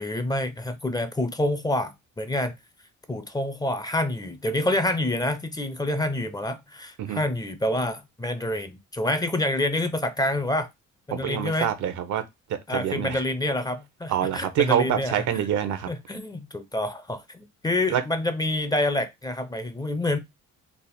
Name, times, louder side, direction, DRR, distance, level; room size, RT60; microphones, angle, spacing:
voice 1, 0.0-2.5 3.1-10.7 11.1-11.7 12.7-15.1 15.9-20.2, left 1 dB, 15° left, 0.5 m, -27 dB
voice 2, 11.1-12.2 12.5-13.2 14.1-15.9 17.9-18.0, right 10 dB, 75° right, 0.8 m, -26 dB
3.5 x 2.1 x 4.1 m
cardioid pair, 90°, 30 cm